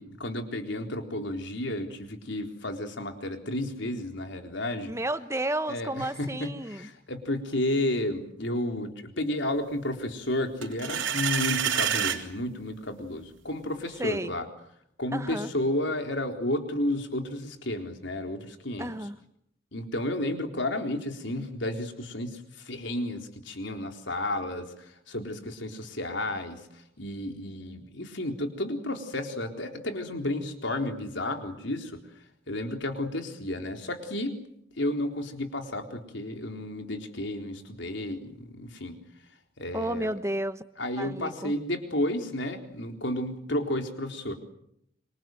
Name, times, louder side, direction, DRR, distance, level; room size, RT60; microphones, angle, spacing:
voice 1, 0.0-4.9 5.7-14.5 15.0-18.9 19.7-32.0 32.5-34.4 34.8-39.0 39.6-40.1 40.8-44.3, left 1 dB, 70° left, 4 dB, 4.0 m, -32 dB
voice 2, 4.9-6.9 14.0-14.3 15.1-15.5 18.8-19.1 39.7-40.6 41.0-41.5, right 1 dB, 15° right, 11 dB, 1.1 m, -32 dB
sound 1, 10.6-12.2, right 8 dB, 90° right, 4.1 m, -27 dB
26.5 x 25.5 x 7.9 m, 0.74 s
head